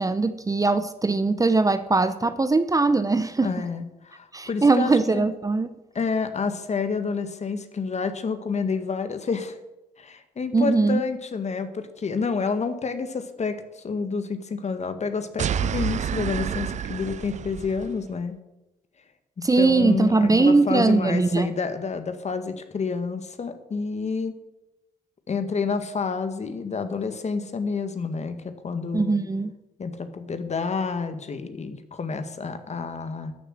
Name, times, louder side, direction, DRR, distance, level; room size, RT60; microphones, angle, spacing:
voice 1, 0.0-3.5 4.3-5.7 10.5-11.0 19.4-21.5 28.9-29.5, right 3 dB, 20° right, 12 dB, 0.8 m, -21 dB
voice 2, 3.4-5.3 6.0-9.6 10.0-18.4 19.4-24.3 25.3-29.2 29.8-33.3, left 5 dB, 40° left, 9 dB, 1.7 m, -29 dB
sound 1, 15.4-18.0, right 8 dB, 45° right, 0.5 m, -29 dB
12.5 x 7.0 x 7.8 m, 0.96 s
hypercardioid pair, 55°, 18 cm